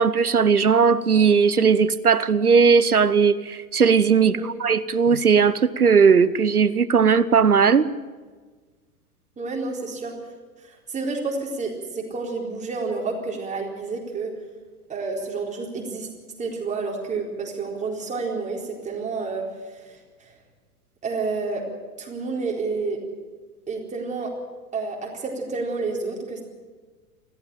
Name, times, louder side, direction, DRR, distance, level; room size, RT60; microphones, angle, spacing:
voice 1, 0.0-7.9, right 6 dB, 80° right, 1.0 m, -18 dB
voice 2, 9.4-10.2 10.6-14.3 14.9-16.1 16.4-20.3 21.0-21.6 22.0-23.0 23.7-24.3 24.7-26.4, right 4 dB, 15° right, 4.2 m, -30 dB
21.0 x 15.0 x 9.1 m
figure-of-eight pair, 95°, 44 cm